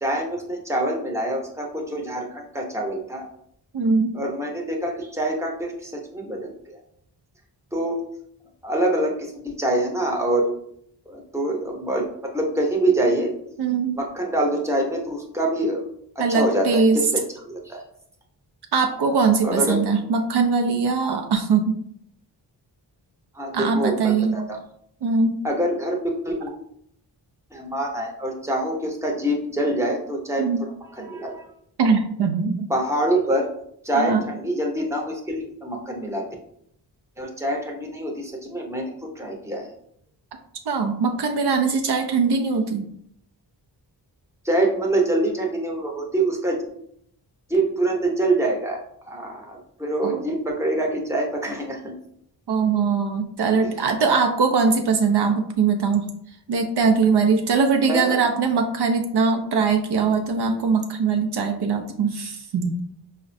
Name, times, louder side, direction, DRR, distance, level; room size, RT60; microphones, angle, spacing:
voice 1, 0.0-3.3 4.1-6.8 7.7-8.0 8.6-10.6 11.1-13.3 13.9-15.8 16.2-17.2 17.6-17.8 19.4-19.8 23.3-24.6 25.4-26.5 27.5-31.4 32.7-33.5 33.8-36.2 37.2-39.7 44.4-46.6 47.5-52.0 57.8-58.2, right 1 dB, 5° right, 0 dB, 0.7 m, -25 dB
voice 2, 3.7-4.2 13.6-14.0 16.2-17.0 18.7-21.8 23.5-24.4 25.0-25.4 30.4-30.6 31.8-32.7 33.9-34.2 40.7-42.9 50.0-50.2 52.5-56.1 56.5-62.8, right 5 dB, 65° right, 4 dB, 0.5 m, -21 dB
4.7 x 2.1 x 2.6 m, 0.69 s
wide cardioid pair, 80°, 43 cm